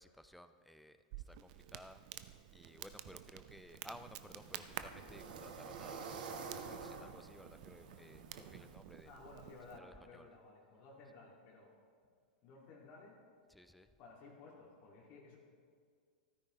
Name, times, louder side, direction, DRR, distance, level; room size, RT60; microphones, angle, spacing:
voice 1, 0.0-2.0 2.5-6.2 6.6-9.2 9.8-10.3 13.5-13.9, equal, ahead, 10 dB, 0.5 m, -57 dB
Crackle, 1.1-9.8, right 12 dB, 55° right, 0.6 m, -52 dB
sound 1, 3.7-8.7, right 5 dB, 75° right, 1.4 m, -49 dB
voice 2, 9.0-11.7 12.4-13.2 14.0-15.4, left 3 dB, 45° left, -3 dB, 2.3 m, -56 dB
14.5 x 13.0 x 3.2 m, 2.1 s
hypercardioid pair, 125°, 5 cm